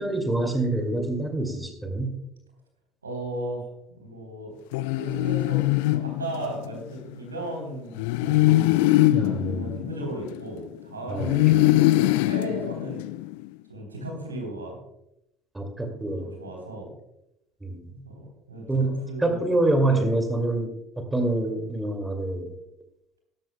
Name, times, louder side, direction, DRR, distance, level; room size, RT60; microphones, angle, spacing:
voice 1, 0.0-2.2 9.1-9.7 11.1-11.5 15.5-16.3 17.6-17.8 18.7-20.7 21.0-22.5, right 2 dB, 10° right, 5 dB, 2.3 m, -26 dB
voice 2, 3.0-4.5 4.9-7.9 8.2-13.0 13.7-14.8 16.2-16.9 18.0-19.4 19.8-20.1, right 1 dB, 80° right, 1 dB, 3.4 m, -36 dB
sound 1, 4.7-6.8 8.0-10.7 11.2-13.4, left 17 dB, 65° left, 0.3 m, -22 dB
17.5 x 13.5 x 2.2 m, 0.83 s
figure-of-eight pair, 60°, 0 cm